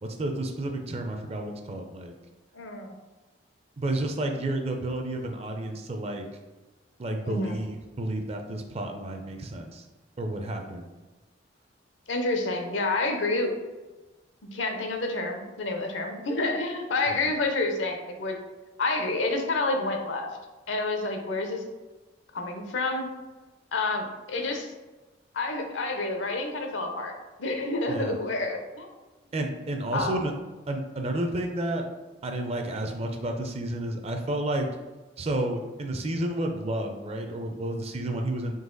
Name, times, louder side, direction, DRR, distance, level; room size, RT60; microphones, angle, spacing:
voice 1, 0.0-2.1 3.8-6.3 7.0-9.8 10.2-10.9 17.1-17.3 27.9-28.2 29.3-30.3 30.7-31.9 32.2-34.7 35.2-38.5, right 1 dB, 35° right, 4 dB, 0.4 m, -31 dB
voice 2, 2.5-3.0 7.2-7.6 12.1-13.5 14.5-18.4 18.8-20.3 20.7-21.6 22.3-23.1 23.7-24.7 25.3-27.1 27.4-28.9 29.9-30.1, left 2 dB, 75° left, 4 dB, 0.7 m, -29 dB
4.0 x 2.8 x 3.8 m, 1.2 s
head